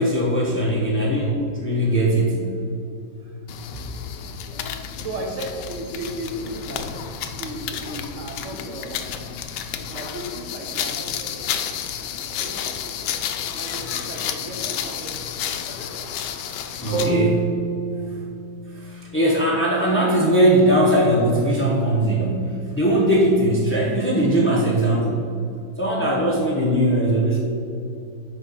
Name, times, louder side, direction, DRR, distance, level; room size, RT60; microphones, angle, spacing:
voice 1, 0.0-2.5 3.7-3.9 12.0-12.1 16.5-17.5 18.7-25.3 25.8-27.4, right 1 dB, 15° left, -4 dB, 0.4 m, -20 dB
sound 1, 3.5-17.2, left 8 dB, 70° left, 1.1 m, -31 dB
voice 2, 4.2-9.5 9.9-11.6 12.4-12.5 12.9-13.0 13.5-15.4 21.9-22.0, right 1 dB, 60° right, 2 dB, 0.8 m, -35 dB
sound 2, 16.9-21.0, right 4 dB, 25° right, 1.5 m, -29 dB
6.8 x 5.4 x 5.7 m, 2.6 s
omnidirectional pair, 2.1 m